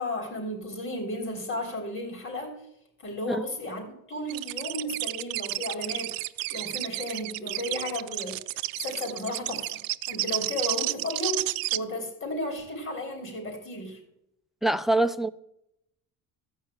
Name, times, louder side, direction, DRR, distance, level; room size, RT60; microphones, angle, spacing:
voice 1, 0.0-2.6 3.0-3.8 4.1-6.1 6.5-8.4 8.8-9.7 10.1-14.0, left 1 dB, 35° left, 3.9 m, -34 dB
sound 1, 4.3-11.8, right 19 dB, 70° right, 0.6 m, -31 dB
voice 2, 14.6-15.3, right 2 dB, ahead, 0.4 m, -24 dB
14.5 x 5.5 x 8.8 m
cardioid pair, 145°, 36 cm